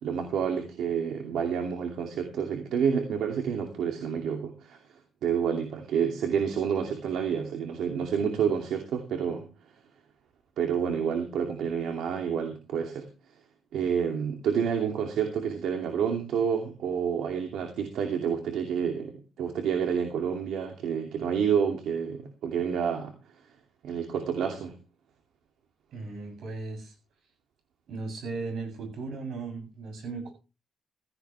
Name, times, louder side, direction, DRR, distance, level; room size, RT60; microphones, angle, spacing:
voice 1, 0.0-4.8 5.2-9.5 10.6-13.1 13.7-23.1 23.8-24.7, right 7 dB, 90° right, 3 dB, 2.6 m, -29 dB
voice 2, 25.9-26.9 27.9-30.3, right 3 dB, 70° right, 5 dB, 7.9 m, -36 dB
16.0 x 14.5 x 3.4 m, 0.32 s
cardioid pair, 130°, 0 cm